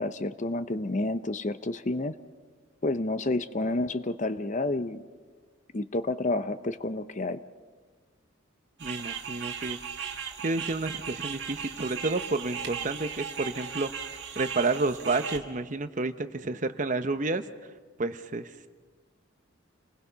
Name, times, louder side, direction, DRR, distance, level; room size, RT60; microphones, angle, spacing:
voice 1, 0.0-2.1 2.8-5.0 5.7-7.4, left 2 dB, 40° left, 12 dB, 0.7 m, -29 dB
voice 2, 8.8-9.8 10.4-13.9 14.4-17.4 18.0-18.5, right 3 dB, 40° right, 10 dB, 0.8 m, -30 dB
sound 1, 8.8-15.4, right 7 dB, 60° right, 2.0 m, -37 dB
29.5 x 20.5 x 5.7 m, 1.5 s
head